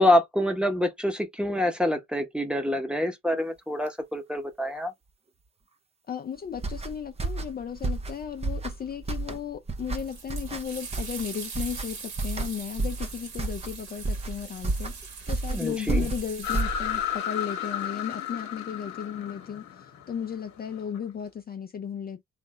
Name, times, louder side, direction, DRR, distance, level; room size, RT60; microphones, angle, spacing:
voice 1, 0.0-4.9 15.5-16.1, left 1 dB, 5° right, 0.9 m, -26 dB
voice 2, 6.1-22.2, left 8 dB, 30° left, 0.5 m, -35 dB
sound 1, 6.5-17.2, right 3 dB, 20° right, 0.6 m, -32 dB
sound 2, 10.0-16.6, right 5 dB, 60° right, 1.9 m, -42 dB
sound 3, 16.4-21.0, left 10 dB, 65° left, 1.0 m, -33 dB
3.2 x 2.6 x 2.3 m
hypercardioid pair, 50°, 31 cm